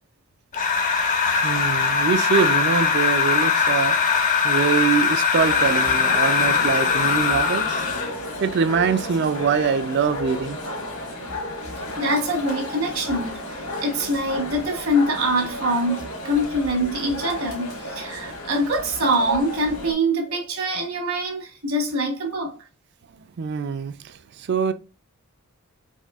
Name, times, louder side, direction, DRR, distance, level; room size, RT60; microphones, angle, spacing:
sound 1, 0.5-8.2, left 5 dB, 35° left, 0.5 m, -21 dB
voice 1, 1.4-4.0 4.4-7.8 8.4-10.6 23.4-24.7, right 6 dB, 50° right, 0.3 m, -23 dB
sound 2, 5.4-19.9, left 1 dB, 85° left, 1.7 m, -33 dB
voice 2, 12.0-22.6, right 1 dB, 70° right, 1.3 m, -24 dB
4.2 x 2.7 x 2.3 m
head